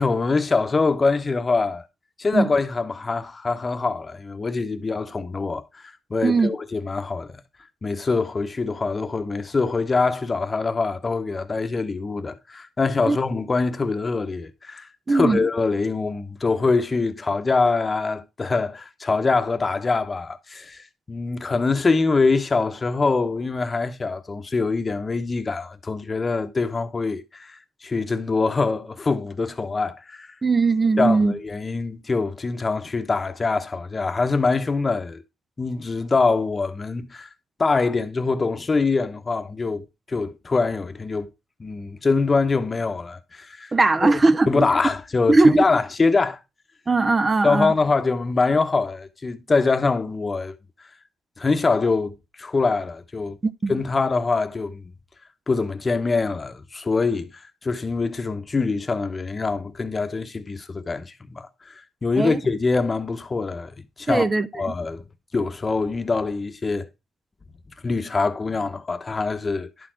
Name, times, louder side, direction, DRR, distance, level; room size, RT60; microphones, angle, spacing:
voice 1, 0.0-1.8 2.2-7.4 7.8-30.3 31.0-35.2 35.6-37.3 37.6-41.3 41.6-43.7 44.0-46.4 47.4-50.5 51.4-53.4 53.7-54.8 55.5-61.7 62.0-65.0 65.3-66.9 67.8-69.7, left 4 dB, 30° left, 0.9 m, -24 dB
voice 2, 15.1-15.5 30.4-31.3 43.7-44.7 45.3-45.6 46.9-47.7 53.6-53.8 62.2-62.4 64.1-64.7, right 3 dB, 25° right, 0.5 m, -19 dB
11.0 x 4.4 x 4.4 m
cardioid pair, 90°, 0 cm